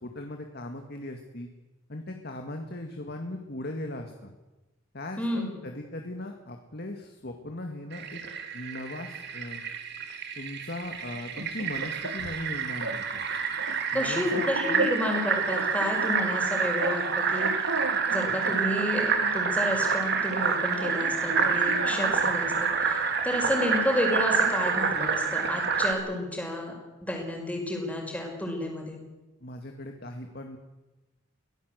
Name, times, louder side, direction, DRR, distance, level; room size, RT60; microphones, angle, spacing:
voice 1, 0.0-1.5 1.9-4.3 4.9-8.2 8.5-9.6 10.4-13.2 13.9-14.9 29.4-30.6, left 1 dB, 50° left, 4 dB, 2.1 m, -38 dB
voice 2, 5.2-5.6 13.9-17.5 18.1-26.7 27.0-29.0, left 1 dB, 5° left, 1 dB, 5.4 m, -31 dB
Fill (with liquid), 7.9-25.9, right 5 dB, 50° right, 2.8 m, -28 dB
sound 1, 11.1-12.5 12.8-13.0 13.3-15.2 15.5-17.0 17.3-19.5 20.3-22.3, right 3 dB, 80° right, 2.2 m, -36 dB
24.0 x 17.0 x 8.1 m, 1.1 s
head